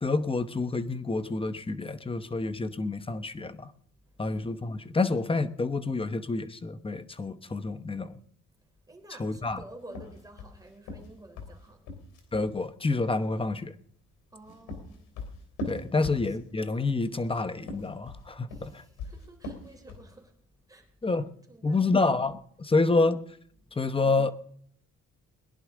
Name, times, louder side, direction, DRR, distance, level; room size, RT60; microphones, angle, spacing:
voice 1, 0.0-3.7 4.2-8.2 9.2-9.6 12.3-13.7 15.7-18.8 21.0-21.3 21.6-23.2 23.8-24.3, left 3 dB, 20° left, 0.9 m, -28 dB
voice 2, 3.9-4.4 8.6-11.9 14.3-15.1 15.9-16.4 18.5-21.2 21.5-22.0 23.6-23.9, right 2 dB, 10° right, 3.6 m, -52 dB
sound 1, 9.9-12.5 14.2-16.6 17.5-20.1, left 2 dB, 90° left, 3.2 m, -40 dB
21.5 x 11.0 x 3.7 m
cardioid pair, 90°, 30 cm